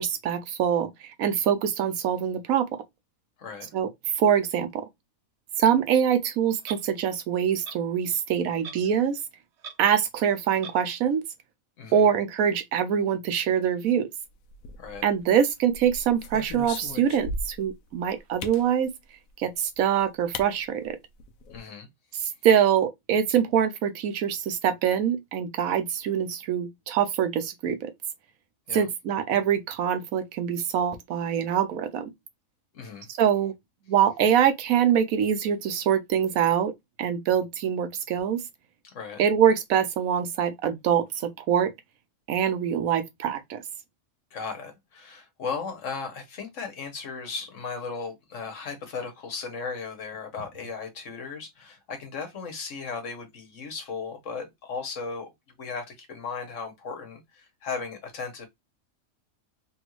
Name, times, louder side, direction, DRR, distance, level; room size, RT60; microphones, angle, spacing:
voice 1, 0.0-2.7 3.7-3.9 4.2-4.8 5.6-9.2 9.8-11.2 11.9-14.1 15.0-18.9 19.4-21.0 22.2-27.9 28.7-32.1 33.2-33.5 33.9-36.7 37.0-38.4 39.2-41.7 42.3-43.6, right 8 dB, 90° right, 1.1 m, -24 dB
voice 2, 3.4-3.7 11.8-12.1 14.8-15.1 21.5-21.9 28.7-28.9 32.7-33.1 38.8-39.2 44.3-55.3 55.6-58.5, left 5 dB, 65° left, 1.3 m, -36 dB
Clock, 6.6-6.8 7.6-7.8 8.6-8.9 9.2-9.3 9.6-9.8 10.6-10.8, right 6 dB, 65° right, 0.8 m, -39 dB
sound 1, 14.5-15.2 15.7-17.7 18.4-18.7 19.8-19.9 20.3-20.5 20.8-20.9 21.2-21.6, left 3 dB, 80° left, 1.0 m, -37 dB
3.4 x 2.4 x 3.0 m
omnidirectional pair, 1.4 m